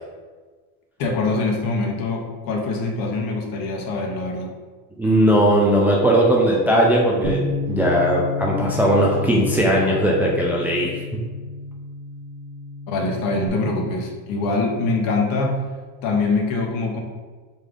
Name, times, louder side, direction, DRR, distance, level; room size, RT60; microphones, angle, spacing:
voice 1, 1.0-4.5 12.9-15.6 16.0-17.0, left 3 dB, 55° left, 2 dB, 0.9 m, -24 dB
voice 2, 5.0-11.0, right 1 dB, 5° right, -3 dB, 0.4 m, -18 dB
Bass guitar, 7.2-13.5, left 3 dB, 85° right, 1.1 m, -30 dB
4.2 x 3.3 x 3.6 m, 1.4 s
cardioid pair, 130°, 41 cm